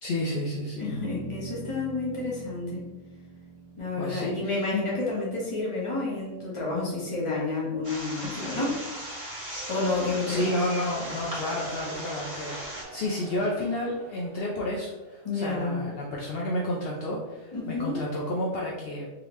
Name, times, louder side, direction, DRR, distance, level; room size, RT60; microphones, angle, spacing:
voice 1, 0.0-0.9 4.0-4.6 10.3-12.6 12.9-19.1, left 1 dB, 65° left, -3 dB, 0.6 m, -31 dB
sound 1, 0.8-7.4, right 3 dB, 85° left, 1.3 m, -44 dB
voice 2, 0.8-2.8 3.8-8.8 9.7-10.5 15.2-15.8 17.5-18.0, left 3 dB, 25° left, -5 dB, 1.0 m, -30 dB
sound 2, 7.8-12.8, equal, 15° right, 1.2 m, -38 dB
Cheering, 10.4-15.1, right 2 dB, 75° right, 0.5 m, -44 dB
3.6 x 3.2 x 3.0 m, 1.1 s
omnidirectional pair, 1.6 m